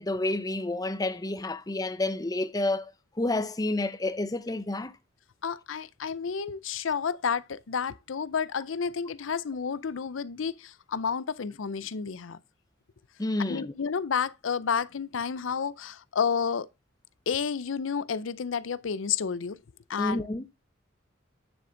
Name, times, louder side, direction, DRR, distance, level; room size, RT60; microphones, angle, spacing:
voice 1, 0.0-2.9 3.2-4.9 13.2-13.7 20.0-20.4, left 2 dB, 20° left, 0.6 m, -29 dB
voice 2, 5.4-12.4 13.5-16.7 17.3-19.6 19.9-20.2, left 6 dB, 85° left, 0.5 m, -30 dB
9.6 x 6.8 x 3.8 m
head